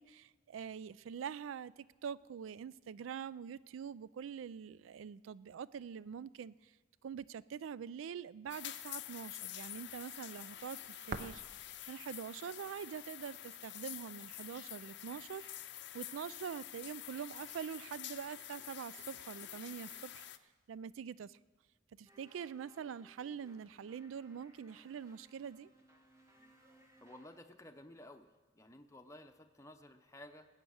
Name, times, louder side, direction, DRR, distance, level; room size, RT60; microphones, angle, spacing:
voice 1, 0.0-6.8 7.0-15.5 15.9-20.3 20.7-21.4 22.0-25.7, right 7 dB, 85° right, 19 dB, 0.3 m, -45 dB
sound 1, 8.5-20.4, left 13 dB, 65° left, 0.5 m, -48 dB
sound 2, 10.4-17.2, right 4 dB, 45° right, 0.6 m, -53 dB
sound 3, 22.1-27.4, right 1 dB, 15° right, 1.2 m, -65 dB
voice 2, 27.0-28.3 28.5-30.5, left 1 dB, 15° left, 5 dB, 0.7 m, -54 dB
19.0 x 8.1 x 6.3 m, 1.3 s
head